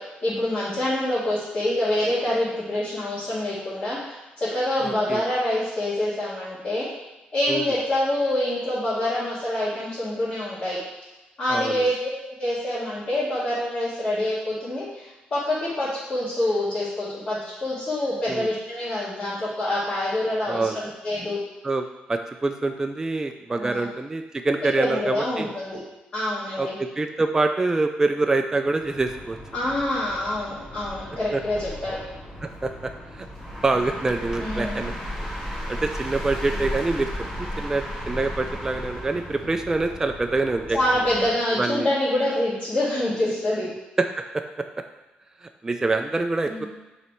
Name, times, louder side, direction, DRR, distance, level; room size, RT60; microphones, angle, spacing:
voice 1, 0.0-6.9 7.3-10.8 11.4-21.4 23.5-23.9 24.8-25.8 26.1-26.7 29.5-32.0 34.4-34.9 40.7-43.7 46.5-46.7, left 1 dB, 35° left, -11 dB, 2.1 m, -26 dB
voice 2, 4.8-5.2 7.5-7.6 11.5-11.9 18.3-18.5 20.5-20.9 21.6-21.8 22.1-25.5 26.6-29.4 31.3-31.4 32.4-33.3 33.6-34.9 35.3-37.1 37.4-40.8 41.6-41.9 44.0-44.7 45.4-46.7, right 3 dB, 15° right, 5 dB, 0.3 m, -26 dB
sound 1, 28.8-41.4, equal, 5° left, 1.5 m, -35 dB
6.8 x 3.2 x 4.4 m, 1.0 s
cardioid pair, 120°, 3 cm